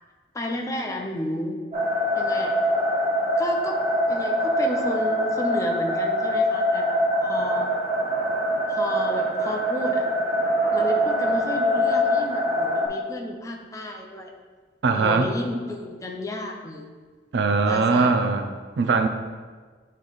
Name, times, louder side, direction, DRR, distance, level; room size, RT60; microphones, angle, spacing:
voice 1, 0.3-1.6 2.2-2.6 3.4-3.8 4.1-7.7 8.7-10.1 10.7-14.3 14.9-16.9 17.7-18.1, left 1 dB, 20° left, 1 dB, 0.6 m, -32 dB
sound 1, 1.7-12.9, equal, 35° right, 1.2 m, -23 dB
voice 2, 14.8-15.3 17.3-19.1, right 4 dB, 75° right, 7 dB, 0.4 m, -21 dB
8.5 x 3.2 x 3.9 m, 1.5 s
head